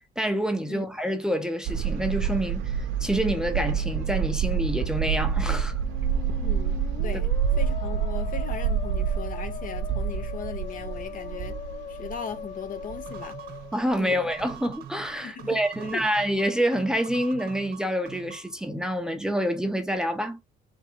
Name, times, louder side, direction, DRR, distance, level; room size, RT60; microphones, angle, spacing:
voice 1, 0.2-2.7 3.0-5.7 13.7-20.4, equal, 5° right, 0.7 m, -27 dB
sound 1, 1.7-13.6 14.0-14.1 14.4-14.5, right 7 dB, 80° right, 0.7 m, -28 dB
Musical instrument, 5.7-14.5, left 8 dB, 35° left, 0.3 m, -40 dB
voice 2, 6.4-7.3 7.6-11.5 11.9-13.4 14.0-14.3 15.2-16.1, left 7 dB, 50° left, 0.8 m, -38 dB
sound 2, 13.1-18.6, right 10 dB, 60° right, 1.1 m, -44 dB
3.6 x 2.9 x 4.5 m
cardioid pair, 115°, 18 cm